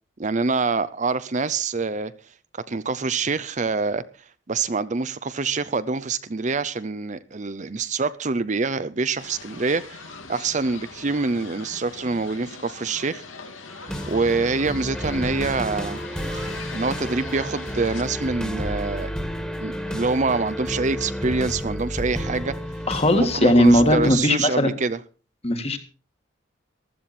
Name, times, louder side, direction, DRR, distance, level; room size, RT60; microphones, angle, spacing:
voice 1, 0.2-2.1 2.5-4.0 4.5-10.0 10.3-13.2 14.1-16.0 16.3-19.1 19.6-22.5 23.1-25.0, right 4 dB, 40° right, 0.6 m, -25 dB
sound 1, 9.2-18.0, left 4 dB, 90° left, 2.5 m, -41 dB
sound 2, 13.9-24.1, equal, 5° left, 1.8 m, -31 dB
voice 2, 22.9-24.7 25.4-25.8, left 1 dB, 30° left, 1.8 m, -18 dB
15.0 x 13.0 x 4.3 m
head